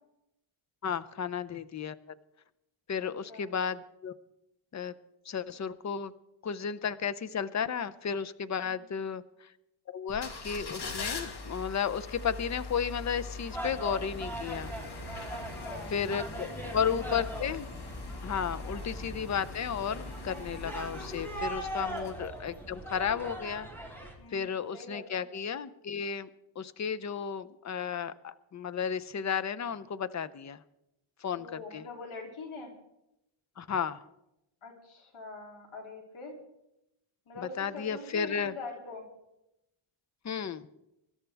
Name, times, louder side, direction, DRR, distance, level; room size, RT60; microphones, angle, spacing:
voice 1, 0.8-2.0 2.9-4.1 4.7-4.9 5.3-6.1 6.4-9.5 9.9-14.7 15.9-16.5 16.7-17.7 18.2-23.7 24.3-26.3 26.6-30.6 31.2-31.9 33.6-34.0 37.6-38.5 40.2-40.7, left 7 dB, 35° left, 14 dB, 0.6 m, -33 dB
voice 2, 3.0-3.5 8.6-9.0 15.3-16.0 16.3-17.3 18.7-18.9 21.7-22.0 24.2-25.2 31.4-32.7 34.6-36.4 37.3-39.0, left 3 dB, 75° left, 0 dB, 3.2 m, -44 dB
sound 1, 10.1-22.6 23.0-23.1, left 3 dB, 50° left, 2.0 m, -42 dB
sound 2, 13.5-24.1, right 1 dB, 5° left, 3.2 m, -40 dB
24.5 x 12.5 x 3.4 m, 0.86 s
wide cardioid pair, 135°, 50 cm